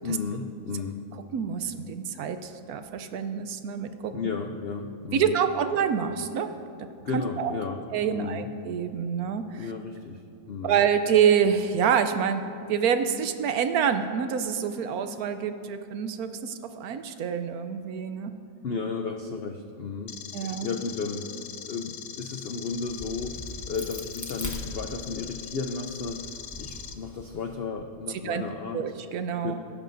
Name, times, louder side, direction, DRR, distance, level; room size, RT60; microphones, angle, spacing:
voice 1, 0.0-1.0 4.1-5.4 7.0-7.8 8.1-8.5 9.6-10.8 18.6-20.2 20.6-21.3 21.6-26.3 26.6-28.8 29.4-29.5, left 5 dB, 85° left, 5 dB, 0.5 m, -33 dB
voice 2, 1.3-4.1 5.1-6.5 7.1-7.5 7.9-9.7 10.6-12.4 12.7-18.3 20.3-20.7 28.2-28.4 28.7-29.5, right 7 dB, 70° right, 9 dB, 1.1 m, -26 dB
sound 1, 20.1-26.9, left 9 dB, 70° left, 1.0 m, -41 dB
Crack, 22.7-25.4 25.9-27.6, left 1 dB, 15° left, 0.9 m, -41 dB
16.0 x 15.0 x 2.6 m, 2.5 s
omnidirectional pair, 1.7 m